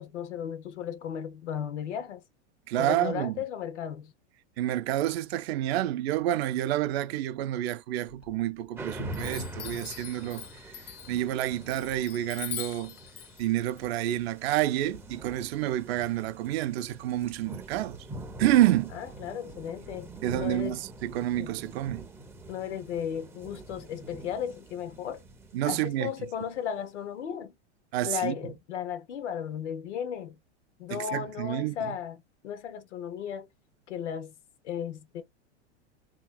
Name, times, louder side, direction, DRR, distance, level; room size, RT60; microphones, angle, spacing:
voice 1, 0.0-2.2 2.8-4.1 18.9-20.8 21.4-21.5 22.5-25.2 25.6-27.5 28.0-30.4 30.8-33.5 33.9-34.4 34.6-35.2, left 9 dB, 85° left, 0.9 m, -35 dB
voice 2, 2.7-3.4 4.6-10.5 11.1-12.9 13.4-18.0 18.4-18.9 20.2-22.1 25.5-26.1 27.9-28.4 30.9-31.9, right 13 dB, 65° right, 0.5 m, -28 dB
Chime, 8.1-8.8 9.1-15.0, left 10 dB, 60° left, 0.6 m, -43 dB
sound 1, 8.8-26.6, right 1 dB, 10° right, 0.4 m, -44 dB
2.9 x 2.7 x 2.3 m
hypercardioid pair, 115°, 35 cm